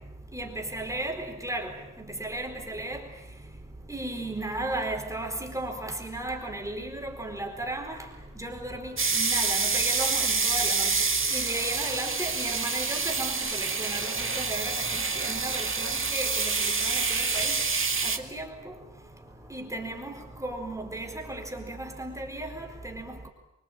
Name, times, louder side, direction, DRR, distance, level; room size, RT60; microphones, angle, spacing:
voice 1, 0.3-3.0 3.9-8.0 8.4-11.0 11.3-17.6 18.0-18.5 19.5-23.3, right 1 dB, 10° right, 4.3 m, -35 dB
sound 1, 9.0-18.2, right 4 dB, 40° right, 1.7 m, -27 dB
26.5 x 24.0 x 8.9 m
wide cardioid pair, 140°, 32 cm